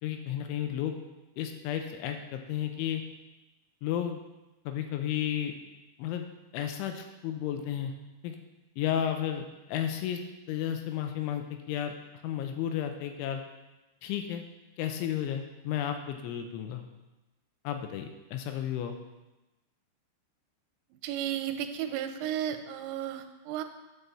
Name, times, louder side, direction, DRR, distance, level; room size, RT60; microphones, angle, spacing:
voice 1, 0.0-1.0 1.4-3.0 3.8-4.2 4.7-5.5 6.0-6.3 6.5-7.9 8.2-8.4 8.8-10.2 10.5-11.9 12.2-13.4 14.0-14.4 14.8-16.8 17.6-19.0, left 10 dB, 80° left, 5 dB, 3.0 m, -32 dB
voice 2, 21.0-23.6, right 10 dB, 90° right, 8 dB, 3.4 m, -33 dB
9.6 x 5.6 x 7.0 m, 1.0 s
omnidirectional pair, 5.7 m